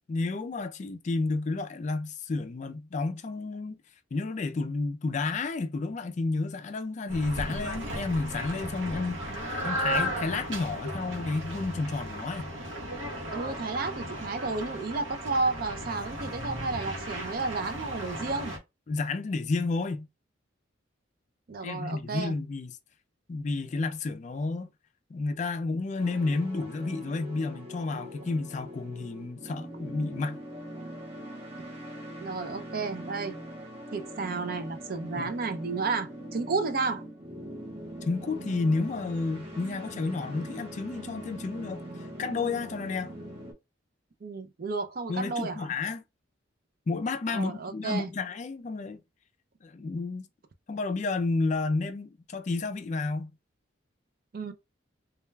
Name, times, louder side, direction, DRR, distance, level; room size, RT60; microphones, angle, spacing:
voice 1, 0.1-3.8 4.1-9.2 9.6-12.5 18.9-20.1 21.6-22.7 23.3-24.7 25.1-30.4 35.2-35.3 38.0-43.1 45.1-46.0 46.9-49.0 49.6-50.3 50.7-53.3, left 3 dB, 40° left, 0.3 m, -31 dB
sound 1, 7.1-18.6, equal, 75° right, 1.0 m, -35 dB
voice 2, 13.3-18.5 21.5-22.3 32.2-33.4 33.9-37.0 44.2-45.7 47.3-48.1 54.3-54.5, right 4 dB, 50° right, 0.4 m, -32 dB
sound 2, 26.0-43.5, right 1 dB, 30° right, 0.8 m, -42 dB
2.3 x 2.2 x 3.1 m
head